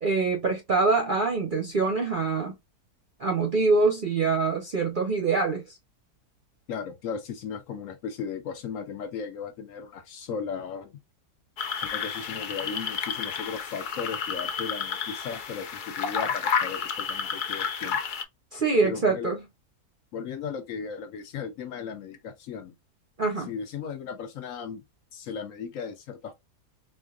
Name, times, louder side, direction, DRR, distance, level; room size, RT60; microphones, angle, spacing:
voice 1, 0.0-2.5 3.2-5.8 18.5-19.4 23.2-23.5, right 4 dB, 50° right, 0.6 m, -24 dB
voice 2, 6.7-11.0 11.8-18.0 18.8-19.3 20.1-22.8 23.5-24.8 25.1-26.3, left 6 dB, 65° left, 0.9 m, -36 dB
sound 1, 11.6-18.2, left 6 dB, 85° left, 0.4 m, -31 dB
4.3 x 2.4 x 2.3 m
omnidirectional pair, 1.7 m